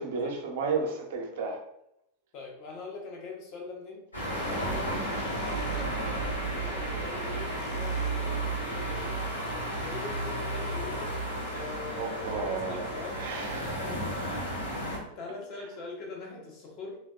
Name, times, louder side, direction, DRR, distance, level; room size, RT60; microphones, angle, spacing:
voice 1, 0.0-1.6 4.6-4.7 12.0-12.9 13.1-13.6 14.3-14.4, right 4 dB, 55° right, 2 dB, 0.5 m, -33 dB
voice 2, 2.3-11.1 11.5-13.2 13.6-14.4 14.6-17.0, left 3 dB, 40° left, 0 dB, 0.8 m, -43 dB
sound 1, 4.1-15.0, right 1 dB, 85° left, 1.0 m, -33 dB
sound 2, 4.3-8.1 8.8-8.9 9.8-12.3, right 2 dB, 10° left, 0.8 m, -48 dB
3.3 x 2.2 x 2.3 m, 0.79 s
figure-of-eight pair, 90°, 0 cm